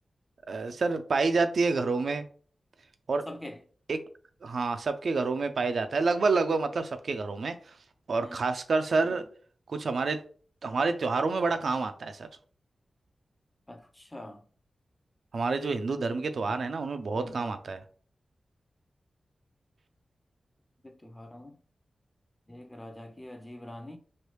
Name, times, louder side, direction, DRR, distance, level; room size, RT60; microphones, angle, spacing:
voice 1, 0.5-2.3 3.1-3.3 3.9-4.0 4.4-7.5 8.1-9.3 9.7-10.2 10.6-12.3 15.3-17.8, right 4 dB, 75° right, 0.3 m, -28 dB
voice 2, 3.3-3.6 8.2-8.5 13.7-14.4 16.3-16.6 17.2-17.6 20.8-21.6 22.5-24.0, left 1 dB, 20° left, 0.6 m, -45 dB
3.2 x 2.2 x 3.0 m
cardioid pair, 50°, 0 cm